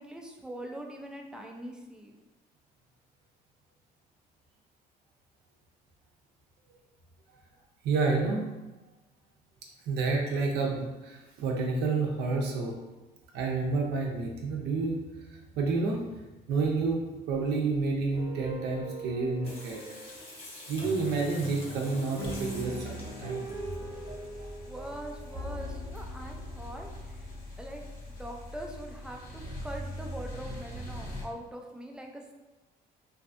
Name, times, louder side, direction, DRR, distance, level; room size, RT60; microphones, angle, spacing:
voice 1, 0.0-2.1 24.6-27.3 27.6-32.3, right 1 dB, 5° right, 1 dB, 0.3 m, -42 dB
voice 2, 7.8-8.4 9.9-12.7 13.3-15.0 15.3-16.0 16.5-19.8 20.7-23.4, right 3 dB, 75° right, 0 dB, 0.5 m, -29 dB
sound 1, 18.1-27.4, right 1 dB, 40° right, 0.9 m, -42 dB
Water tap faucet / Sink (filling or washing), 19.4-23.7 25.2-25.3 25.6-25.7 26.0-26.1, left 1 dB, 35° left, 0.8 m, -47 dB
sound 2, 22.2-31.2, equal, 60° left, 0.8 m, -42 dB
2.6 x 2.3 x 2.5 m, 1.1 s
cardioid pair, 110°, 17 cm